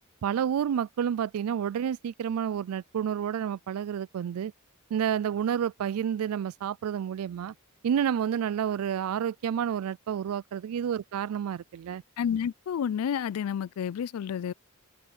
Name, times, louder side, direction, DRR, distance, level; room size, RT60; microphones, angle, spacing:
voice 1, 0.2-4.5 4.9-7.5 7.8-12.0, right 8 dB, 85° right, 0.3 m, -29 dB
voice 2, 12.2-14.5, left 8 dB, 90° left, 0.3 m, -30 dB
head